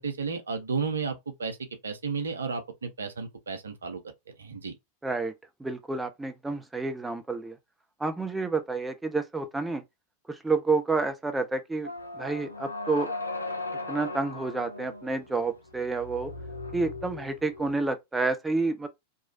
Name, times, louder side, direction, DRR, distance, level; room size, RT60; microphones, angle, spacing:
voice 1, 0.0-1.6 1.8-4.0 4.4-4.7, right 5 dB, 70° right, 0.7 m, -32 dB
voice 2, 5.0-5.3 5.6-7.6 8.0-9.8 10.3-11.9 12.2-13.1 13.9-16.3 16.7-18.9, right 3 dB, 10° right, 0.4 m, -29 dB
sound 1, 11.8-17.8, left 2 dB, 85° left, 0.5 m, -38 dB
3.0 x 2.3 x 2.7 m
figure-of-eight pair, 90°, 0 cm